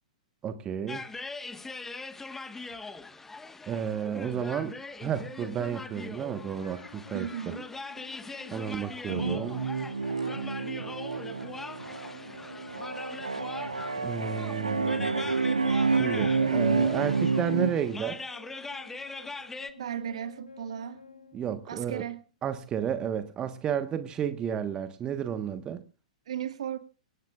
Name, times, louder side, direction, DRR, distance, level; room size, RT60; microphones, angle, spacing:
voice 1, 0.4-1.0 3.7-4.7 5.0-7.3 8.5-9.7 14.0-15.2 15.9-18.2 21.3-22.0 22.4-25.8, right 8 dB, 20° right, 1.3 m, -32 dB
sound 1, 0.9-19.7, left 3 dB, 10° left, 1.4 m, -42 dB
sound 2, 5.1-22.1, left 4 dB, 80° left, 2.9 m, -51 dB
voice 2, 7.1-7.7 19.8-21.0 21.7-22.2 26.3-26.8, right 9 dB, 60° right, 1.8 m, -35 dB
sound 3, 9.1-17.7, right 4 dB, 80° right, 1.6 m, -29 dB
26.0 x 17.0 x 2.4 m
figure-of-eight pair, 105°, 4 cm